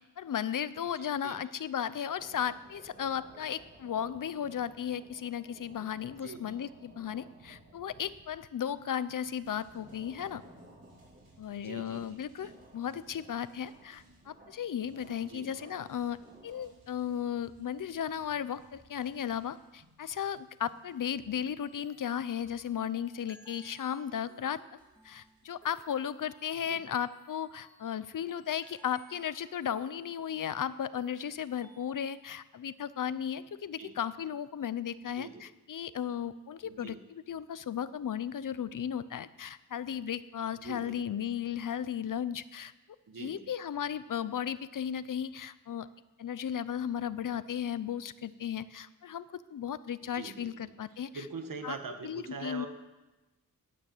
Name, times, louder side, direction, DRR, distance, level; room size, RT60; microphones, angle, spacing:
voice 1, 0.0-10.4 11.4-24.6 25.0-42.7 43.2-45.9 46.2-49.3 49.5-51.2 51.6-51.7 52.0-52.7, left 9 dB, 60° left, 16 dB, 0.6 m, -35 dB
voice 2, 1.0-1.4 6.2-6.6 11.5-12.5 15.2-15.5 26.6-26.8 33.8-33.9 35.1-35.4 36.6-37.0 40.6-41.0 43.1-43.4 50.0-50.7 51.1-52.7, right 4 dB, 65° right, 6 dB, 1.7 m, -44 dB
sound 1, 2.2-16.9, right 1 dB, 30° right, 3.4 m, -56 dB
sound 2, 9.3-24.1 24.7-26.2, right 2 dB, 85° right, 6.2 m, -65 dB
sound 3, 21.6-32.3, right 2 dB, 5° left, 2.1 m, -62 dB
17.5 x 9.1 x 7.3 m, 1.1 s
wide cardioid pair, 135°, 35 cm